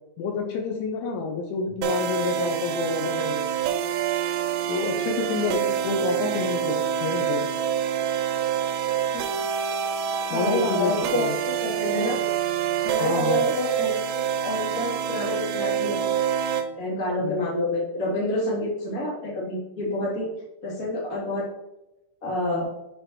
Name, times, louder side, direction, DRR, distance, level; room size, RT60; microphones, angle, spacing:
voice 1, 0.2-3.5 4.7-7.4 10.3-11.3 13.0-13.4 17.2-17.4, left 4 dB, 80° left, 3 dB, 3.0 m, -28 dB
sound 1, 1.8-16.7, right 9 dB, 85° right, 3.3 m, -26 dB
voice 2, 10.3-12.2 12.8-16.0 16.7-20.3 20.6-21.5 22.2-22.7, left 1 dB, 35° left, -6 dB, 1.3 m, -28 dB
8.7 x 5.0 x 3.0 m, 0.92 s
omnidirectional pair, 6.0 m